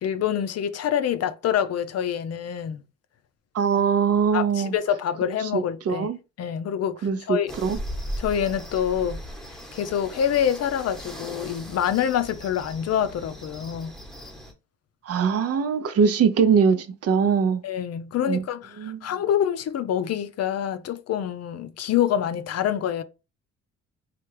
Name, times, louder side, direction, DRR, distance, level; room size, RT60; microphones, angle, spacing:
voice 1, 0.0-2.8 4.3-6.1 6.4-7.5 8.2-9.2 9.7-14.0 17.6-23.0, left 9 dB, 55° left, 0.5 m, -26 dB
voice 2, 3.5-4.7 5.3-6.2 7.0-7.8 15.0-17.6 18.3-18.4 18.8-19.0, right 6 dB, 55° right, 0.6 m, -22 dB
sound 1, 7.5-14.5, equal, ahead, 1.0 m, -38 dB
3.2 x 2.4 x 3.2 m
cardioid pair, 90°, 30 cm